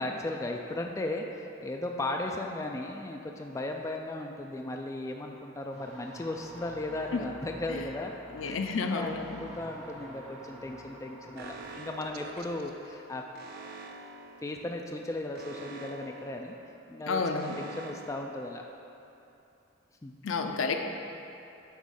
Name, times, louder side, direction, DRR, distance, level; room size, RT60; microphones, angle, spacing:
voice 1, 0.0-8.1 8.4-13.2 14.4-16.5 16.9-18.6 20.0-20.1, left 2 dB, 15° left, 2 dB, 0.3 m, -36 dB
sound 1, 5.7-11.7, right 1 dB, 30° right, 1.5 m, -48 dB
voice 2, 8.3-9.4 17.1-17.6 20.2-20.9, left 4 dB, 75° left, 5 dB, 0.5 m, -31 dB
Alarm, 11.4-19.1, right 3 dB, 50° right, 0.4 m, -47 dB
9.0 x 3.1 x 6.4 m, 2.8 s
head